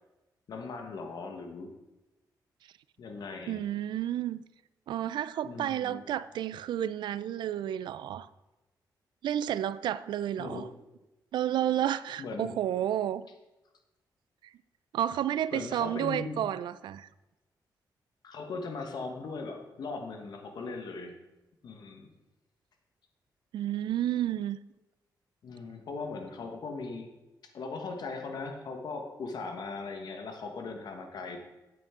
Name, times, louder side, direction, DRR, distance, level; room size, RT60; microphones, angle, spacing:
voice 1, 0.5-1.7 3.0-3.6 5.4-6.0 10.4-10.7 12.2-12.5 15.5-16.4 18.2-21.2 21.6-22.1 25.4-27.1 27.5-31.4, left 4 dB, 65° left, 4 dB, 1.3 m, -39 dB
voice 2, 3.5-4.4 4.9-8.3 9.2-10.7 11.3-13.3 14.9-17.1 23.5-24.6, right 11 dB, 90° right, 16 dB, 0.3 m, -31 dB
9.2 x 8.5 x 3.7 m, 1.0 s
cardioid pair, 120°, 8 cm